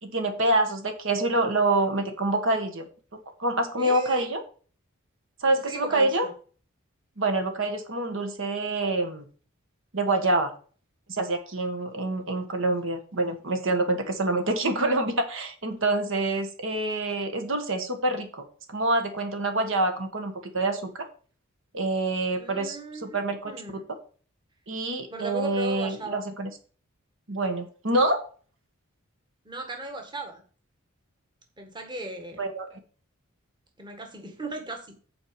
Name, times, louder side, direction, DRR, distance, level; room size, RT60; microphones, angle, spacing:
voice 1, 0.0-2.9 3.4-4.4 5.4-6.3 7.2-9.2 9.9-10.5 11.1-18.4 18.7-20.9 21.7-22.8 23.0-23.5 24.7-26.5 27.3-28.2 32.4-32.7, right 2 dB, 60° right, 6 dB, 1.5 m, -26 dB
voice 2, 3.8-4.3 5.5-6.3 22.3-23.2 23.4-23.8 25.1-26.2 29.4-30.4 31.6-32.4 33.8-35.0, right 1 dB, 20° right, 4 dB, 1.5 m, -36 dB
8.7 x 4.7 x 6.8 m, 0.40 s
head